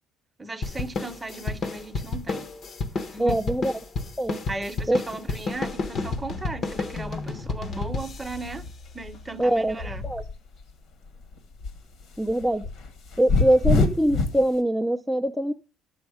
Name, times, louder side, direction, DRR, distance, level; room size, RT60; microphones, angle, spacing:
voice 1, 0.4-2.5 3.1-3.4 4.5-8.7 8.9-10.0, right 2 dB, 15° right, 0.9 m, -36 dB
sound 1, 0.6-9.4, left 3 dB, 45° left, 1.0 m, -32 dB
voice 2, 3.2-3.7 4.2-4.4 4.9-5.0 9.4-9.8 10.0-10.2 12.2-12.6 13.2-15.5, right 1 dB, 5° left, 0.5 m, -23 dB
sound 2, 5.5-10.7 11.0-14.5, left 3 dB, 65° left, 1.6 m, -28 dB
11.0 x 7.1 x 4.9 m
cardioid pair, 95°, 0 cm